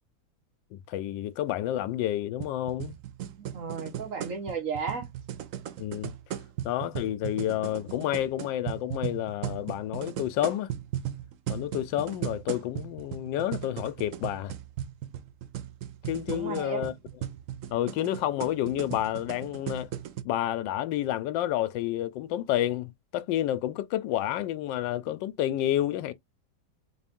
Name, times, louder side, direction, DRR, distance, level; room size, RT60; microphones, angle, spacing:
voice 1, 0.7-2.9 5.8-6.1 6.6-10.7 11.5-14.5 16.1-16.9 17.7-19.9 20.2-26.1, left 12 dB, 80° left, 1.3 m, -30 dB
sound 1, 2.4-20.2, right 11 dB, 80° right, 0.7 m, -37 dB
voice 2, 3.4-5.1 16.3-16.9, right 5 dB, 50° right, 1.4 m, -34 dB
4.2 x 2.5 x 3.5 m
omnidirectional pair, 2.0 m